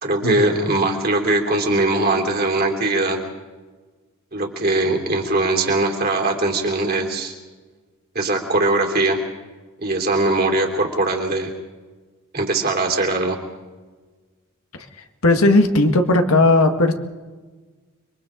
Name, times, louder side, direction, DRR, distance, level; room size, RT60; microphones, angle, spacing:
voice 1, 0.0-3.2 4.3-7.3 8.1-9.2 9.8-11.5 12.3-13.4, right 2 dB, 45° right, 1 dB, 3.1 m, -21 dB
voice 2, 15.2-16.9, left 2 dB, 90° left, 6 dB, 1.7 m, -16 dB
29.5 x 23.0 x 3.8 m, 1.4 s
head